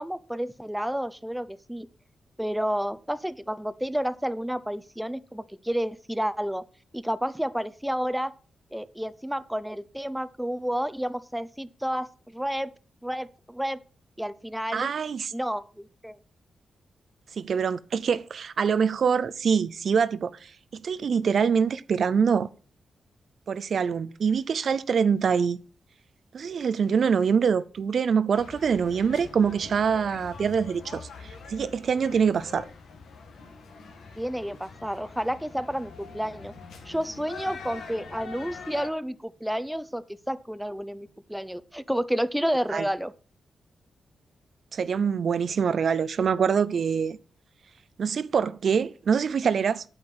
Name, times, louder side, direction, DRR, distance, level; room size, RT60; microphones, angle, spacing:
voice 1, 0.0-1.9 2.4-6.6 6.9-8.3 8.7-12.1 12.3-12.7 13.0-13.8 14.2-14.9 15.3-16.2 34.1-36.5 36.9-43.1, equal, 5° right, 0.7 m, -30 dB
voice 2, 14.7-15.3 17.3-22.5 23.5-25.6 26.3-32.6 42.7-42.8 44.7-47.2 48.0-49.8, right 6 dB, 65° right, 0.5 m, -25 dB
sound 1, 28.3-38.9, left 4 dB, 85° left, 2.1 m, -44 dB
8.7 x 8.0 x 6.0 m
cardioid pair, 75°, 0 cm